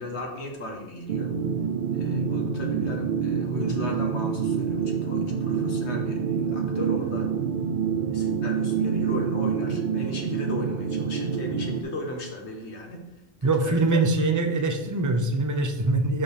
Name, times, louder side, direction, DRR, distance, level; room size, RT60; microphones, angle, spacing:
voice 1, 0.0-1.3 1.9-7.3 8.1-13.0 13.6-14.0, left 1 dB, 85° left, 1 dB, 1.7 m, -36 dB
sound 1, 1.1-11.8, right 6 dB, 55° right, 0.7 m, -27 dB
voice 2, 13.4-16.2, right 2 dB, 20° right, 4 dB, 0.7 m, -23 dB
5.8 x 5.2 x 6.5 m, 0.92 s
omnidirectional pair, 1.1 m